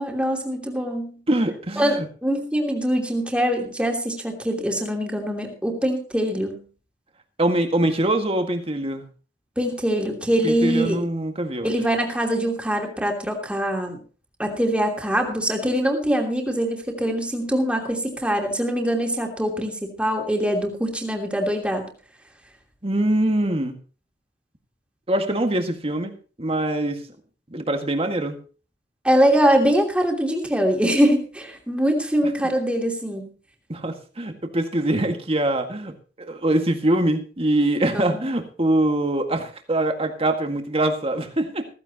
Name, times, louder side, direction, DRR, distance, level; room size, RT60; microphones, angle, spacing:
voice 1, 0.0-1.2 1.8-6.6 9.6-11.0 11.6-14.0 14.4-21.9 29.0-33.3 37.9-38.3, equal, 5° right, 2 dB, 2.8 m, -23 dB
voice 2, 1.3-2.1 7.4-9.0 10.4-11.7 22.8-23.7 25.1-27.1 27.5-28.4 33.7-41.7, right 1 dB, 35° right, 5 dB, 1.9 m, -23 dB
15.5 x 15.0 x 2.9 m, 0.38 s
head